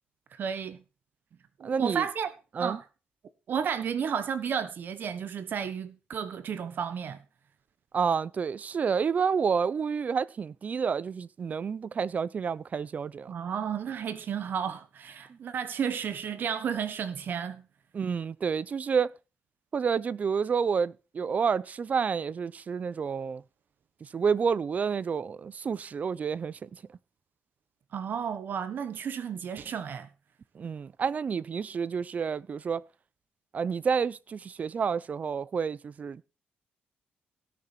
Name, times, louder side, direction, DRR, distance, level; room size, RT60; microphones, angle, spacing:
voice 1, 0.3-0.8 1.6-2.3 2.6-2.8 3.5-7.2 13.3-17.6 27.9-30.1, right 7 dB, 60° right, 1.1 m, -32 dB
voice 2, 1.6-2.0 2.5-2.8 7.9-13.4 17.9-19.1 19.7-23.4 24.0-26.7 30.6-32.8 33.5-36.2, right 6 dB, 45° right, 0.5 m, -29 dB
17.0 x 6.8 x 4.4 m
cardioid pair, 110°, 4 cm